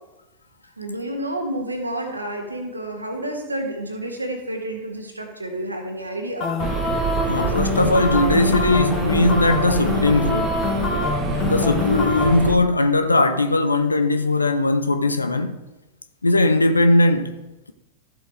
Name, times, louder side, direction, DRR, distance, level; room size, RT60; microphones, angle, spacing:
voice 1, 0.8-6.5, right 1 dB, 80° right, 1.9 m, -30 dB
sound 1, 6.4-12.5, left 5 dB, 35° left, 1.9 m, -25 dB
sound 2, 6.6-12.6, right 8 dB, 35° right, 1.0 m, -27 dB
voice 2, 7.3-10.6 11.4-15.6 16.2-17.7, left 2 dB, 80° left, 0.6 m, -19 dB
14.0 x 7.8 x 3.3 m
figure-of-eight pair, 90°, 0 cm